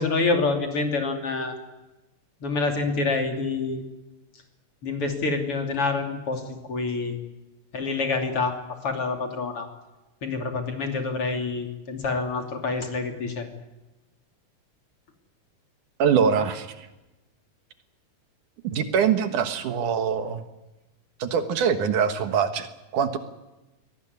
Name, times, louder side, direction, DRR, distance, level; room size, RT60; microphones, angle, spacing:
voice 1, 0.0-1.6 2.4-3.8 4.8-7.1 7.7-9.7 10.2-13.5, left 3 dB, 45° left, 4 dB, 3.7 m, -27 dB
voice 2, 16.0-16.7 18.6-20.4 21.2-22.7 22.9-23.2, right 7 dB, 70° right, 9 dB, 2.8 m, -23 dB
23.0 x 18.5 x 9.7 m, 1.0 s
omnidirectional pair, 3.8 m